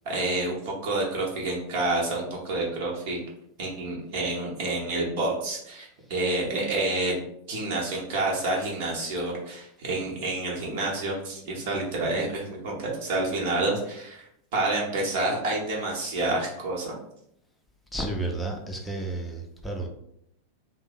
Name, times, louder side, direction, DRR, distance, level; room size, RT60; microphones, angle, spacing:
voice 1, 0.1-3.2 3.6-7.2 7.5-14.3 14.5-16.9, right 2 dB, 55° right, -2 dB, 1.0 m, -28 dB
voice 2, 17.9-19.9, right 2 dB, ahead, 0 dB, 0.6 m, -31 dB
2.7 x 2.0 x 3.9 m, 0.75 s
figure-of-eight pair, 90°, 0 cm